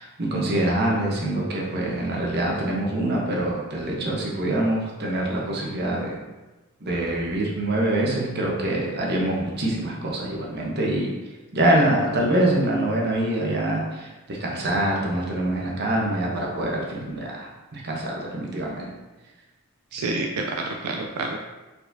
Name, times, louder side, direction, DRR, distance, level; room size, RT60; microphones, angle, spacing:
voice 1, 0.0-6.2 6.8-11.1 11.5-18.9, right 1 dB, 50° right, -2 dB, 1.0 m, -25 dB
voice 2, 19.9-21.4, right 3 dB, 85° right, 2 dB, 0.4 m, -28 dB
4.5 x 4.1 x 2.7 m, 1.1 s
head